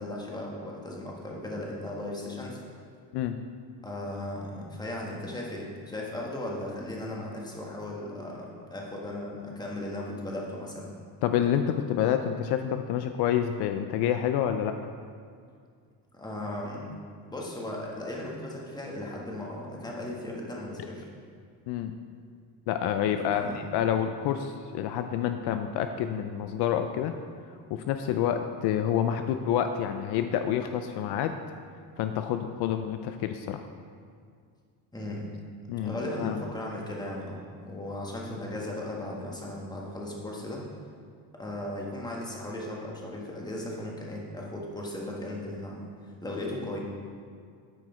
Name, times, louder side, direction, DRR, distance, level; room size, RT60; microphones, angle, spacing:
voice 1, 0.0-2.6 3.8-10.9 16.1-16.9 17.3-21.1 23.3-23.6 34.9-35.3 35.8-40.6 41.3-46.8, left 1 dB, 10° left, -2 dB, 1.4 m, -37 dB
voice 2, 11.2-14.8 20.8-20.9 21.7-21.9 22.7-27.1 27.7-31.4 32.0-33.7 35.7-36.4, left 9 dB, 70° left, 8 dB, 0.5 m, -28 dB
9.5 x 5.0 x 4.4 m, 2.1 s
cardioid pair, 120°, 41 cm